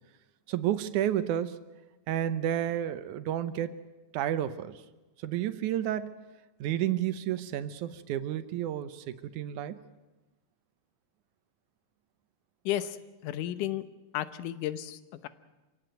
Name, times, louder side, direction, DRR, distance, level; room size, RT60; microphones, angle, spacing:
voice 1, 0.5-1.6 2.1-3.8 4.1-4.8 5.2-6.2 6.6-9.8, right 11 dB, 80° right, 13 dB, 2.3 m, -31 dB
voice 2, 12.7-13.0 13.2-13.8 14.1-15.3, left 12 dB, 85° left, 14 dB, 2.5 m, -33 dB
26.5 x 17.0 x 9.2 m, 1.1 s
omnidirectional pair, 3.5 m